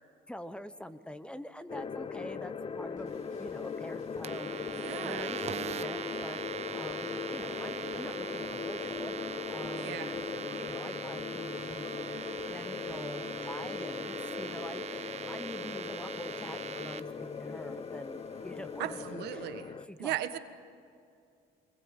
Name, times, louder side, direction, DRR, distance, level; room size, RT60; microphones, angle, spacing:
voice 1, 0.3-10.0 10.5-11.9 12.4-19.5 19.8-20.4, left 1 dB, 5° left, 12 dB, 0.9 m, -46 dB
sound 1, 1.7-19.9, left 5 dB, 30° left, 0.8 m, -39 dB
sound 2, 3.0-13.9, left 2 dB, 50° left, 6.1 m, -61 dB
sound 3, 4.2-17.0, right 8 dB, 40° right, 0.9 m, -41 dB
voice 2, 4.8-5.3 9.7-10.2 18.8-19.7 20.0-20.4, right 13 dB, 80° right, 10 dB, 1.4 m, -37 dB
24.0 x 20.5 x 8.7 m, 2.5 s
cardioid pair, 110°, 17 cm